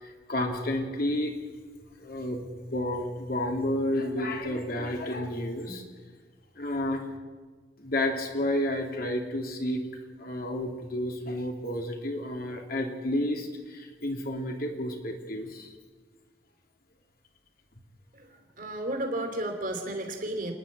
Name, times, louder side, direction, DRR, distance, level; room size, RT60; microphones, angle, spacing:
voice 1, 0.0-1.3 2.0-5.8 6.5-7.0 7.8-9.8 10.2-15.7, left 1 dB, 60° left, 2 dB, 2.9 m, -31 dB
voice 2, 18.1-20.5, right 1 dB, 50° right, 4 dB, 2.9 m, -33 dB
29.0 x 10.5 x 8.7 m, 1.4 s
head